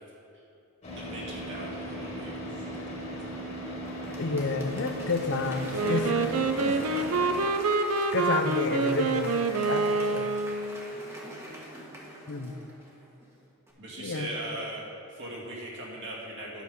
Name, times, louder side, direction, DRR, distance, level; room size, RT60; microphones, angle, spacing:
Car / Idling, 0.8-7.4, equal, 35° left, 2.1 m, -37 dB
voice 1, 0.9-3.4 6.6-7.0 13.8-14.9 15.2-16.6, right 1 dB, 60° right, -4 dB, 2.3 m, -40 dB
Applause / Crowd, 3.8-13.3 13.7-13.8, equal, 10° right, 1.4 m, -44 dB
voice 2, 4.2-6.3 6.6-6.8 8.1-10.3 12.3-12.6 14.0-14.3, left 3 dB, 55° left, 7 dB, 0.6 m, -30 dB
Wind instrument woodwind instrument, 5.7-10.9, right 3 dB, 85° right, 0.6 m, -27 dB
10.5 x 6.5 x 5.4 m, 2.8 s
head